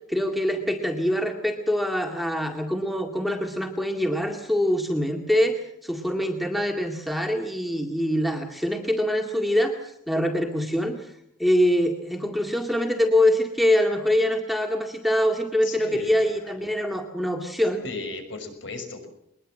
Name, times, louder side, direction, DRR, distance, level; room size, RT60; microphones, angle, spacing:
voice 1, 0.1-9.8 10.1-11.0 11.4-17.8, left 1 dB, ahead, 3 dB, 2.1 m, -24 dB
voice 2, 15.6-16.3 17.8-19.1, left 3 dB, 60° left, 7 dB, 5.9 m, -35 dB
22.0 x 21.0 x 7.6 m, 0.75 s
head